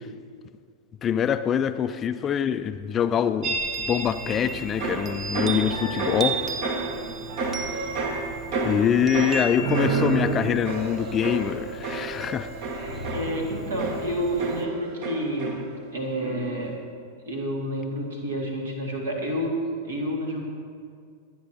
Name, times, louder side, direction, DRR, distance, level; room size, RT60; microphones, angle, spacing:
voice 1, 1.0-3.6 3.9-6.4 8.6-12.5, left 8 dB, 25° left, 11 dB, 0.4 m, -24 dB
Chime, 3.4-14.6, right 4 dB, 20° right, 0.8 m, -35 dB
sound 1, 4.3-15.9 16.2-16.7, right 3 dB, 50° right, 1.4 m, -30 dB
voice 2, 12.7-15.6 15.9-16.7 17.3-19.6 19.8-20.5, equal, 70° right, 0 dB, 2.2 m, -29 dB
23.0 x 9.4 x 3.0 m, 2.2 s
figure-of-eight pair, 90°, 0 cm